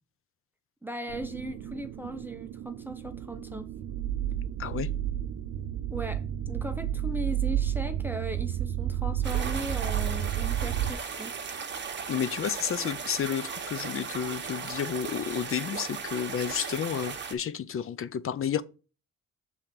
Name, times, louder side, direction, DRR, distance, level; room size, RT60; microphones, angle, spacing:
voice 1, 0.8-3.7 5.9-11.3, right 1 dB, 5° right, 0.7 m, -38 dB
sound 1, 1.1-10.9, right 11 dB, 85° right, 0.6 m, -31 dB
sound 2, 9.2-17.3, right 6 dB, 35° right, 1.2 m, -37 dB
voice 2, 12.1-18.6, left 8 dB, 45° left, 0.6 m, -31 dB
5.9 x 4.0 x 5.9 m
cardioid pair, 90°, 30 cm